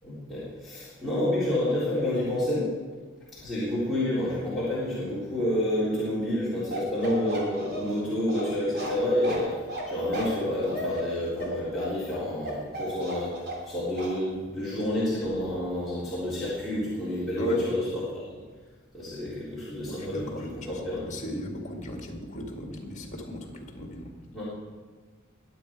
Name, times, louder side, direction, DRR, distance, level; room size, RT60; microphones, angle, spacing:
voice 1, 0.0-2.7 3.4-9.6 9.9-18.4 18.9-21.1 24.3-24.4, left 1 dB, ahead, -13 dB, 3.8 m, -29 dB
Bark, 6.7-13.7 14.0-14.2, right 1 dB, 50° right, 3.4 m, -35 dB
voice 2, 19.9-24.1, left 1 dB, 35° left, 3 dB, 2.0 m, -36 dB
21.5 x 7.9 x 4.7 m, 1.4 s
head